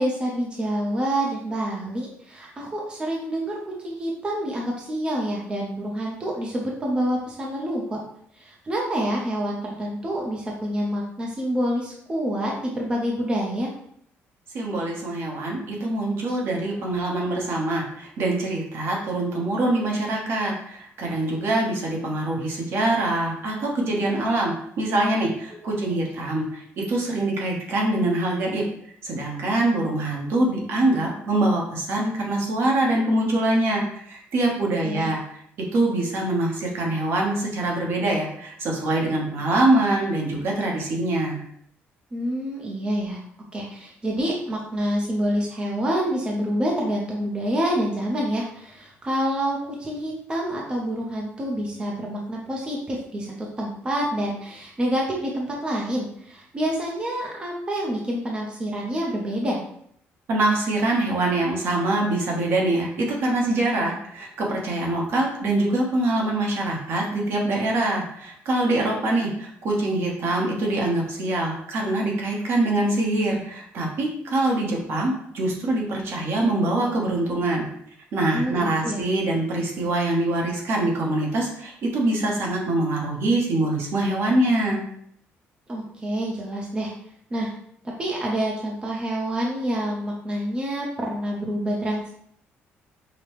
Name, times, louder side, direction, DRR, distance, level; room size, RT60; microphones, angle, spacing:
voice 1, 0.0-8.0 8.4-13.7 25.5-26.0 34.6-35.1 42.1-43.2 43.5-59.6 78.3-78.6 78.8-79.0 85.7-86.9 87.3-87.5 87.8-92.1, equal, 20° right, -2 dB, 0.7 m, -27 dB
voice 2, 14.5-28.6 29.0-35.2 35.7-41.4 60.3-77.6 78.1-84.8, right 2 dB, 60° right, -1 dB, 1.0 m, -24 dB
5.0 x 2.2 x 3.0 m, 0.69 s
cardioid pair, 135°, 5 cm